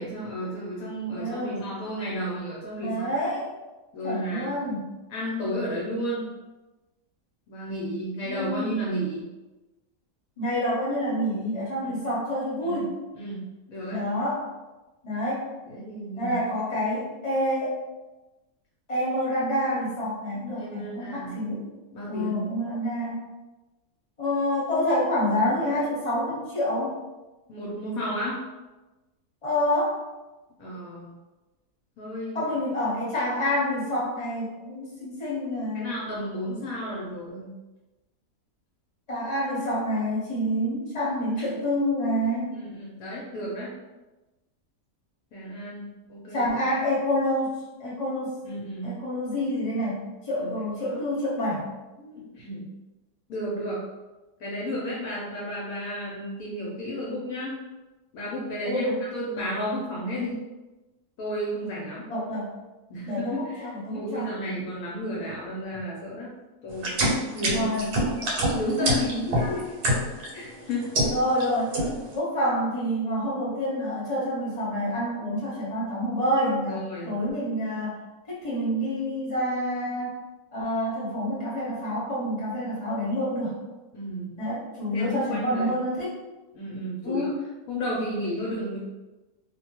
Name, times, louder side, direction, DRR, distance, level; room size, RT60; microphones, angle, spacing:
voice 1, 0.0-3.1 3.9-4.6 5.1-6.3 7.5-9.3 11.8-11.9 12.6-12.8 13.2-14.0 15.7-16.5 20.6-21.4 21.9-22.4 27.5-28.4 30.6-31.1 32.0-32.4 35.7-37.5 41.4-41.5 42.5-43.7 45.3-46.5 48.4-48.9 50.3-51.0 52.0-52.7 53.3-53.8 54.4-57.6 58.1-60.4 61.2-62.1 62.9-66.3 66.6-67.0 67.3-67.7 68.5-69.7 70.3-71.1 76.7-77.1 83.9-84.3 84.9-85.8 86.5-87.3 87.7-88.8, equal, 70° left, -5 dB, 1.0 m, -32 dB
voice 2, 1.1-1.6 2.8-3.5 4.0-4.9 8.2-8.8 10.4-12.9 13.9-14.4 15.0-15.5 16.2-17.8 18.9-21.7 22.1-23.2 24.2-26.9 29.4-30.0 32.3-36.0 36.6-36.7 39.1-42.5 46.3-47.5 47.8-48.4 48.8-51.8 58.6-59.0 62.1-62.5 63.1-64.2 67.5-67.9 68.8-69.0 71.1-71.8 72.1-76.8 77.0-78.0 78.3-80.1 80.5-83.6 84.4-86.1 87.0-87.3, equal, 30° left, -8 dB, 1.0 m, -27 dB
sound 1, 66.7-70.3 70.7-71.4 71.7-72.1, right 1 dB, 80° right, 1.2 m, -25 dB
2.6 x 2.1 x 2.9 m, 1.1 s
omnidirectional pair, 1.6 m